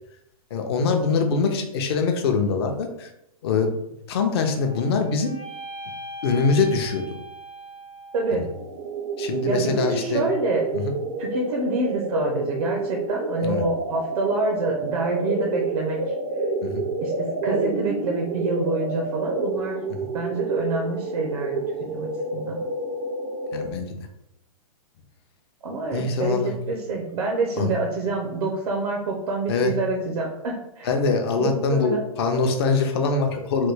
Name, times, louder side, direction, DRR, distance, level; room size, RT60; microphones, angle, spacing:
voice 1, 0.5-3.1 3.4-3.8 4.1-5.3 6.2-7.1 8.3-8.5 9.2-10.3 10.7-10.9 13.4-13.6 16.6-16.8 23.5-24.0 25.9-26.5 27.6-27.7 29.5-29.7 30.8-33.7, left 4 dB, 40° left, 5 dB, 0.5 m, -23 dB
sound 1, 4.2-8.5, equal, 75° left, 0.9 m, -40 dB
sound 2, 8.5-23.7, right 3 dB, 35° right, 0.4 m, -29 dB
voice 2, 9.5-10.6 11.2-16.0 17.0-19.8 20.1-21.6 21.9-22.6 25.6-30.9 31.4-32.0, right 3 dB, 75° right, 0 dB, 0.7 m, -27 dB
3.2 x 2.2 x 3.2 m, 0.83 s
hypercardioid pair, 160°, 19 cm